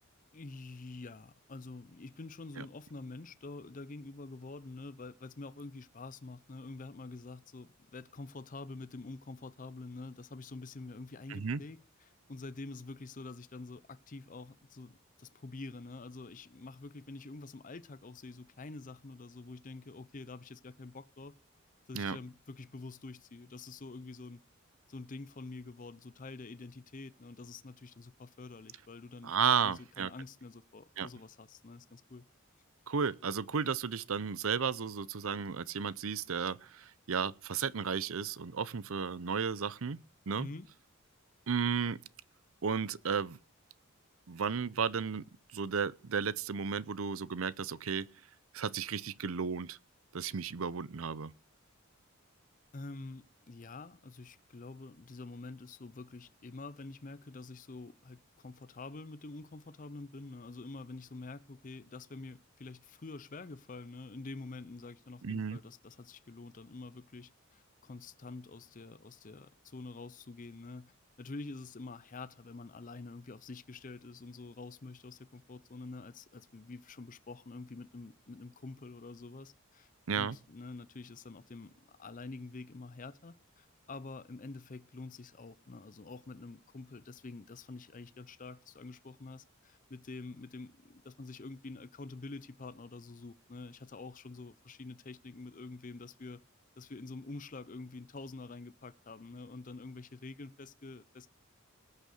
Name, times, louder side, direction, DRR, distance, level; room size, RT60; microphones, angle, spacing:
voice 1, 0.3-21.3 21.9-24.4 24.9-32.3 40.4-40.7 52.7-79.9 80.1-96.4 96.8-101.3, left 3 dB, 35° left, 0.6 m, -47 dB
voice 2, 11.3-11.6 21.9-22.2 29.2-30.1 31.0-31.1 32.9-40.0 40.3-40.5 41.5-42.0 42.6-43.4 44.3-45.2 45.5-48.1 48.5-49.8 50.1-51.3 65.2-65.6 80.1-80.4, right 6 dB, 75° right, 0.6 m, -33 dB
19.0 x 6.6 x 6.5 m
head